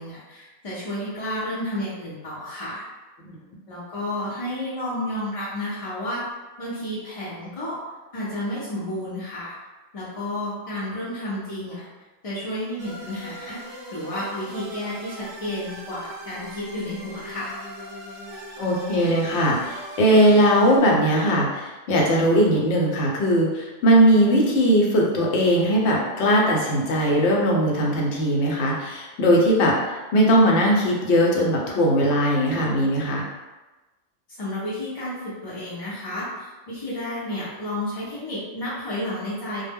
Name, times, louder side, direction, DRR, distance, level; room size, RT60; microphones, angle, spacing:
voice 1, 0.0-2.8 3.7-6.2 6.6-7.8 8.1-9.5 9.9-11.9 12.2-13.6 13.9-17.5 34.3-39.6, left 1 dB, 40° left, -10 dB, 0.5 m, -31 dB
sound 1, 12.8-20.8, right 1 dB, 55° right, 0.4 m, -40 dB
voice 2, 18.6-33.2, equal, 70° left, -2 dB, 0.9 m, -19 dB
2.1 x 2.1 x 3.4 m, 1.2 s
omnidirectional pair, 1.2 m